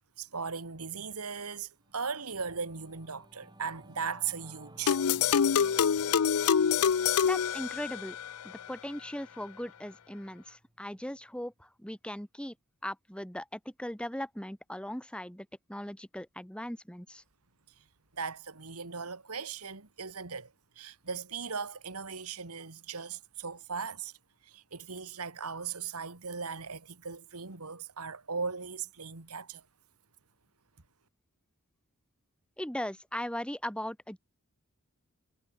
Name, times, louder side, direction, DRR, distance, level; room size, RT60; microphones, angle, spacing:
voice 1, 0.2-5.0 18.1-24.1 24.4-29.6, right 5 dB, 80° right, 2.2 m, -38 dB
Singing / Musical instrument, 1.6-11.3, right 1 dB, 20° right, 4.3 m, -57 dB
sound 1, 4.9-8.3, left 7 dB, 80° left, 0.5 m, -26 dB
voice 2, 7.2-8.2 8.4-12.5 12.8-17.2 32.6-34.2, left 1 dB, 5° left, 3.0 m, -39 dB
head